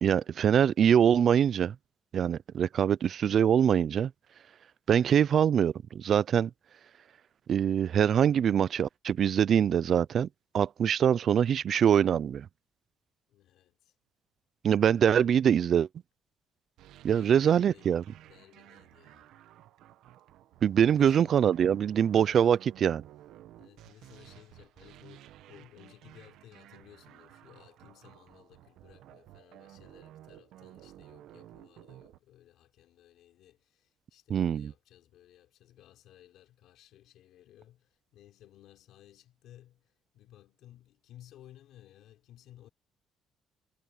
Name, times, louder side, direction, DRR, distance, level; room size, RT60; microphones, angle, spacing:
voice 1, 0.0-1.7 2.1-4.1 4.9-6.5 7.5-10.3 10.5-12.5 14.6-15.9 17.0-18.0 20.6-23.0 34.3-34.7, right 8 dB, 45° right, 0.4 m, -24 dB
voice 2, 13.3-14.0 17.1-17.9 18.3-19.4 20.9-21.4 22.2-22.6 23.6-42.7, left 12 dB, 75° left, 3.7 m, -57 dB
sound 1, 16.8-32.2, right 13 dB, 80° right, 1.1 m, -54 dB
cardioid pair, 160°, 0 cm